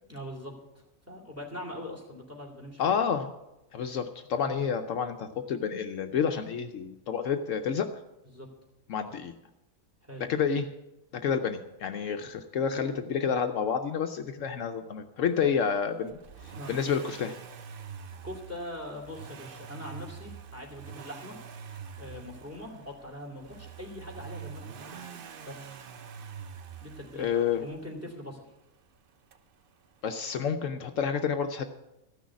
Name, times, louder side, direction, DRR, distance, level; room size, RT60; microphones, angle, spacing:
voice 1, 0.1-2.9 8.3-8.5 10.0-10.3 15.4-15.5 16.5-16.7 17.8-21.4 22.0-25.8 26.8-28.4, left 1 dB, 10° right, 0 dB, 2.6 m, -42 dB
voice 2, 2.8-3.3 3.7-7.9 8.9-9.3 10.3-10.7 11.1-16.2 16.7-17.4 27.2-27.6 30.0-31.7, left 7 dB, 70° left, 6 dB, 1.0 m, -29 dB
Accelerating revving vroom, 16.1-28.0 29.3-29.4, right 7 dB, 50° right, 0.7 m, -45 dB
14.0 x 6.3 x 8.2 m, 0.94 s
omnidirectional pair, 1.4 m